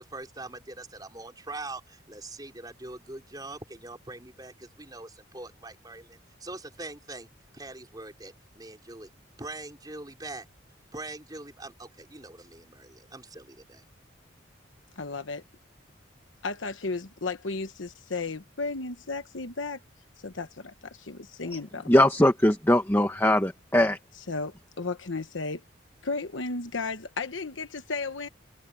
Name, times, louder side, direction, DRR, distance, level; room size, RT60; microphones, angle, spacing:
voice 1, 0.0-7.3 7.5-9.1 9.4-10.5 10.9-13.8, right 2 dB, 20° right, 4.4 m, -42 dB
voice 2, 15.0-15.4 16.4-19.8 20.2-21.9 24.3-25.6 26.0-28.3, left 3 dB, 80° left, 1.1 m, -34 dB
voice 3, 21.9-24.0, left 1 dB, 10° left, 1.3 m, -21 dB
head